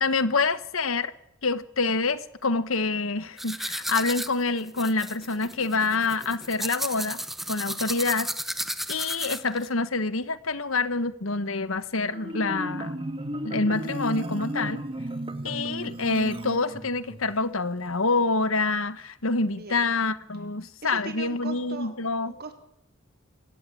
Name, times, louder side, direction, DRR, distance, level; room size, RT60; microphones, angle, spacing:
voice 1, 0.0-1.1 1.4-7.2 7.5-8.3 8.9-12.9 13.4-14.8 15.4-22.3, left 3 dB, 75° left, 14 dB, 1.5 m, -27 dB
sound 1, 3.4-9.7, equal, ahead, 1.0 m, -33 dB
Marimba xylophone, 12.1-17.2, right 1 dB, 25° right, 2.0 m, -34 dB
voice 2, 19.4-19.8 20.8-21.9 22.3-22.5, right 3 dB, 50° right, 6 dB, 3.9 m, -39 dB
27.5 x 17.0 x 8.8 m, 0.79 s
head